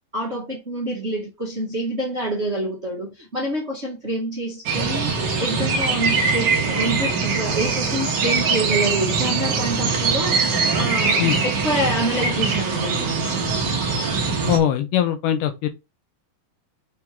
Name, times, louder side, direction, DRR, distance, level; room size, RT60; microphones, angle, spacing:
voice 1, 0.1-5.1 5.4-10.4 10.7-13.3, right 1 dB, 35° right, 1.1 m, -27 dB
sound 1, 4.6-14.6, right 4 dB, 80° right, 0.9 m, -22 dB
voice 2, 14.5-15.7, left 10 dB, 80° left, 2.2 m, -21 dB
6.3 x 3.5 x 4.5 m
omnidirectional pair, 4.0 m